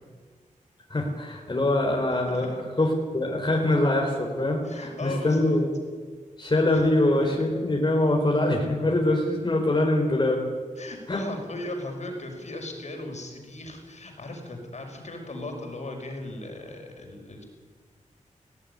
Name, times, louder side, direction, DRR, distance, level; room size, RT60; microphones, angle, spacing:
voice 1, 0.9-5.7 6.4-10.4 11.1-11.2, left 1 dB, 35° left, -1 dB, 4.2 m, -24 dB
voice 2, 4.6-5.6 6.7-6.9 7.2-7.3 10.8-17.4, left 2 dB, 60° left, 2 dB, 5.7 m, -37 dB
19.5 x 17.5 x 10.0 m, 1.5 s
wide cardioid pair, 90°, 13 cm